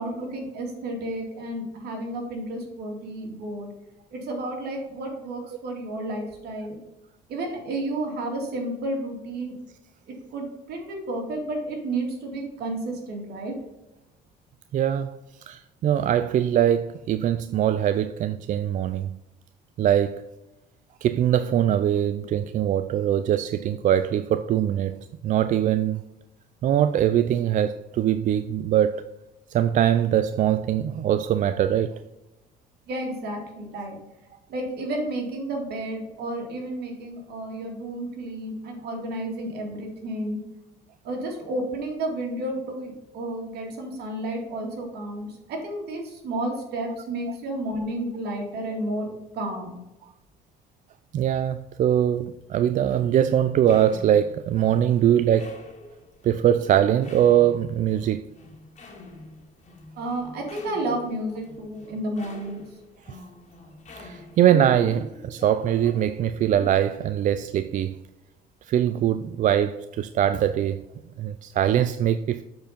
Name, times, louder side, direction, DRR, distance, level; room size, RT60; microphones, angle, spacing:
voice 1, 0.0-3.7 4.1-6.8 7.3-9.5 10.1-13.5 32.9-34.0 34.5-40.4 41.0-49.7 60.0-62.6, right 1 dB, 70° right, 2.5 m, -31 dB
voice 2, 14.7-15.1 15.5-19.1 19.8-20.2 21.0-25.0 25.2-26.0 26.6-29.1 29.5-32.0 33.7-33.9 51.1-55.6 56.2-58.3 64.0-68.0 68.7-70.8 71.2-72.4, right 10 dB, 50° right, 0.4 m, -22 dB
sound 1, 52.8-66.8, left 2 dB, 45° left, 2.0 m, -44 dB
7.7 x 4.6 x 5.1 m
cardioid pair, 110°, 17 cm